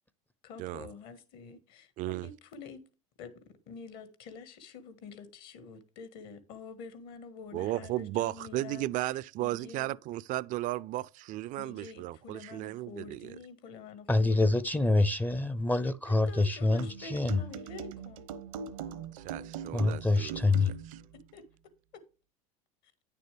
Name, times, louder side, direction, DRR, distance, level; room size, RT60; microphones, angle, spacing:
voice 1, 0.4-2.8 3.2-9.1 9.4-9.9 11.6-14.6 16.0-18.3 21.1-21.4 21.9-22.0, left 4 dB, 60° left, 1.6 m, -47 dB
voice 2, 2.0-2.3 7.5-13.3 19.1-20.5 20.9-21.0, right 16 dB, 50° right, 0.4 m, -35 dB
voice 3, 14.1-17.4 19.7-20.7, left 2 dB, 10° left, 0.5 m, -26 dB
sound 1, 16.8-21.1, right 7 dB, 80° right, 0.9 m, -41 dB
9.3 x 6.8 x 3.4 m
hypercardioid pair, 95°, 18 cm